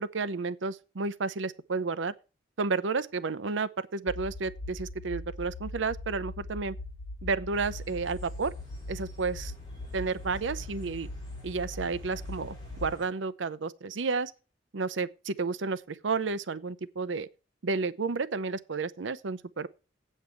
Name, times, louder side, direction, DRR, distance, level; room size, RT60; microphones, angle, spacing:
voice 1, 0.0-2.1 2.6-6.7 7.2-8.5 8.9-9.5 9.9-11.1 11.4-14.3 14.7-17.3 17.6-19.7, right 4 dB, 80° right, 0.6 m, -31 dB
sound 1, 4.1-12.9, left 2 dB, 55° left, 0.8 m, -41 dB
sound 2, 7.5-13.0, left 1 dB, 20° left, 4.5 m, -52 dB
8.3 x 5.5 x 7.7 m
head